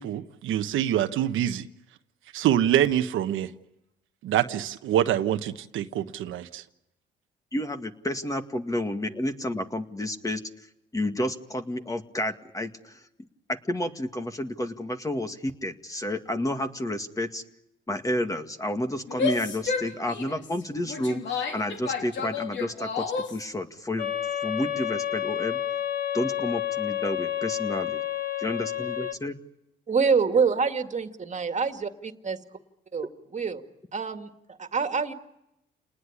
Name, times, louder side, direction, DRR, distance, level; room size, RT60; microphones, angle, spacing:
voice 1, 0.0-1.7 2.3-3.5 4.2-6.6, right 11 dB, 80° right, 1.2 m, -25 dB
voice 2, 7.5-10.7 10.9-13.0 13.5-17.4 17.9-24.1 24.4-25.6 26.1-28.0 28.4-29.4, left 1 dB, 15° left, 2.1 m, -30 dB
Female speech woman speaking / Yell, 19.1-23.4, left 5 dB, 65° left, 3.3 m, -31 dB
sound 1, 24.0-29.1, left 11 dB, 50° left, 1.2 m, -30 dB
voice 3, 29.9-32.4 32.9-33.6 33.9-34.3 34.6-35.1, right 5 dB, 35° right, 2.2 m, -26 dB
29.0 x 19.5 x 9.9 m
cardioid pair, 90°, 20 cm